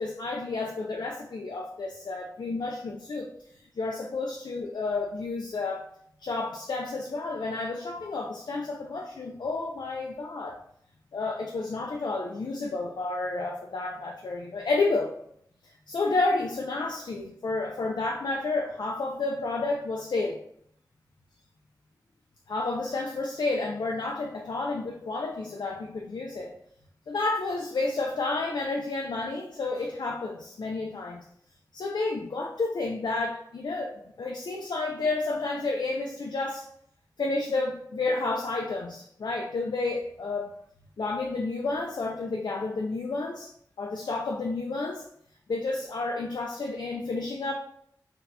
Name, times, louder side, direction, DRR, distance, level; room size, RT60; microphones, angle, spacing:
voice 1, 0.0-3.3 3.8-5.9 6.2-10.6 11.1-15.1 15.6-20.4 22.5-26.5 27.1-31.2 31.7-33.9 34.2-36.7 37.2-40.5 41.0-43.5 43.8-45.1 45.5-47.5, left 3 dB, 75° left, 1 dB, 0.4 m, -30 dB
2.7 x 2.2 x 4.0 m, 0.70 s
wide cardioid pair, 75°, 7 cm